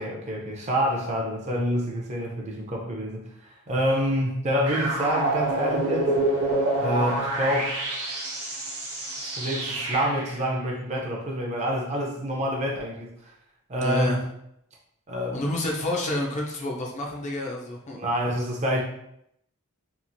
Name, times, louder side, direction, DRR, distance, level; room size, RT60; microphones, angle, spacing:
voice 1, 0.0-3.2 3.7-6.1 6.8-7.8 9.2-13.1 13.7-14.2 15.1-15.5 17.9-18.8, equal, 30° right, 0 dB, 0.5 m, -27 dB
sound 1, 4.7-10.4, right 1 dB, 85° right, 0.9 m, -27 dB
voice 2, 13.8-14.2 15.3-18.0, left 1 dB, 30° left, -1 dB, 0.5 m, -29 dB
2.9 x 2.4 x 2.6 m, 0.75 s
head